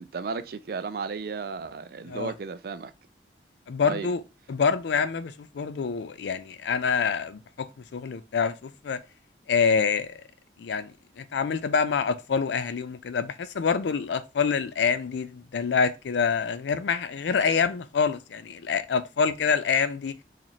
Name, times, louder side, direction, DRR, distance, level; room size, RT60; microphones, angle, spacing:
voice 1, 0.0-2.9 3.8-4.1, right 5 dB, 55° right, 0.3 m, -34 dB
voice 2, 3.7-4.2 4.5-7.7 7.9-9.0 9.5-10.2 10.6-10.9 11.2-20.1, left 6 dB, 75° left, 0.4 m, -26 dB
4.1 x 2.5 x 2.9 m
head